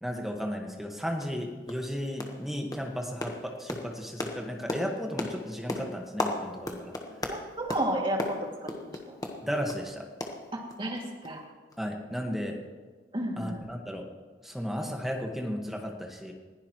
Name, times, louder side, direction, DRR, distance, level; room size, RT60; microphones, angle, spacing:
voice 1, 0.0-6.9 9.4-10.1 11.8-12.6 13.4-14.1 14.4-16.3, equal, ahead, 1 dB, 1.6 m, -34 dB
sound 1, 0.7-0.8 1.2-1.4 1.7-1.9 2.2-2.5 2.7-9.9 10.2-11.0 11.2-11.4 11.7-11.8, left 1 dB, 20° left, 1.3 m, -36 dB
voice 2, 7.3-9.2 10.8-11.4 13.1-13.6, right 1 dB, 30° right, -1 dB, 2.4 m, -32 dB
21.0 x 15.5 x 3.1 m, 1.4 s
head